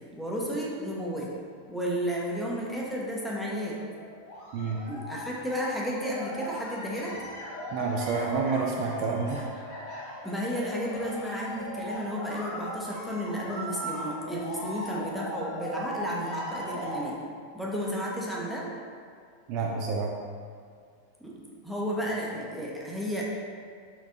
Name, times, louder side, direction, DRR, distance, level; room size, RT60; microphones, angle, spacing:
voice 1, 0.1-1.3 1.7-3.8 4.9-7.1 10.2-17.2 17.5-18.7 21.2-23.2, equal, ahead, -5 dB, 0.6 m, -32 dB
sound 1, 1.8-1.9 2.7-2.8 3.3-17.0, equal, 45° left, 0.9 m, -39 dB
voice 2, 4.5-4.8 7.7-9.4 19.5-20.1, right 4 dB, 45° right, 0 dB, 0.3 m, -28 dB
4.2 x 2.5 x 2.6 m, 2.1 s
figure-of-eight pair, 90°, 0 cm